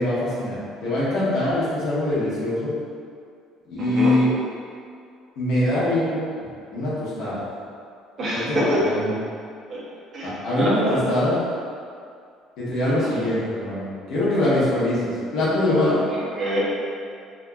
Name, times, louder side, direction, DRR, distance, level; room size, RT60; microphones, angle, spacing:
voice 1, 0.0-2.7 3.7-4.3 5.4-6.2 6.7-7.4 8.3-9.1 10.2-11.4 12.6-16.0, left 1 dB, 65° left, -10 dB, 1.0 m, -23 dB
voice 2, 3.8-4.1 8.2-8.8 9.7-9.8 10.1-11.0 13.0-13.3 16.1-16.6, right 1 dB, 35° right, -7 dB, 0.6 m, -26 dB
2.9 x 2.4 x 2.2 m, 2.3 s
cardioid pair, 160°, 0 cm